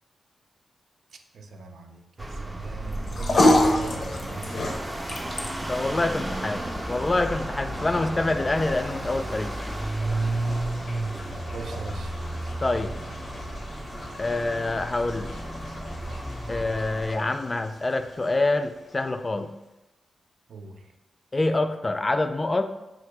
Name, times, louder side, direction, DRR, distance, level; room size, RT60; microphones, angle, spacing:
voice 1, 1.3-4.6 11.5-12.2 20.5-20.9, right 3 dB, 80° right, 5 dB, 0.4 m, -41 dB
sound 1, 2.2-17.1, right 2 dB, 20° right, 0.6 m, -33 dB
sound 2, 2.9-19.4, left 1 dB, 70° left, 0.7 m, -31 dB
voice 2, 5.6-9.6 12.6-13.0 14.2-15.3 16.5-19.5 21.3-22.6, left 2 dB, 35° left, 8 dB, 0.4 m, -26 dB
3.7 x 2.5 x 4.6 m, 0.97 s
cardioid pair, 55°, 0 cm